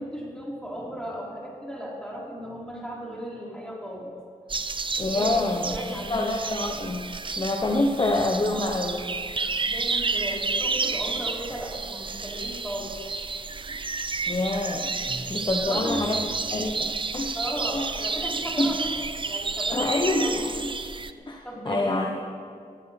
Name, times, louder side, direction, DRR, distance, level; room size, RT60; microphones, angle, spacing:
voice 1, 0.0-4.1 5.1-6.3 9.7-13.0 13.5-13.8 15.0-15.3 15.6-16.3 16.7-16.8 17.3-19.0 19.2-20.5 21.4-22.0, equal, 5° left, -5 dB, 4.5 m, -35 dB
sound 1, 4.5-21.1, right 4 dB, 35° right, 0.6 m, -31 dB
voice 2, 5.0-7.1 7.4-9.0 14.3-15.0 15.3-17.3 17.7-17.8 18.6-18.7 19.7-20.7 21.3-22.1, left 2 dB, 30° left, 0 dB, 1.0 m, -26 dB
24.5 x 8.4 x 4.2 m, 2.2 s
cardioid pair, 70°, 15 cm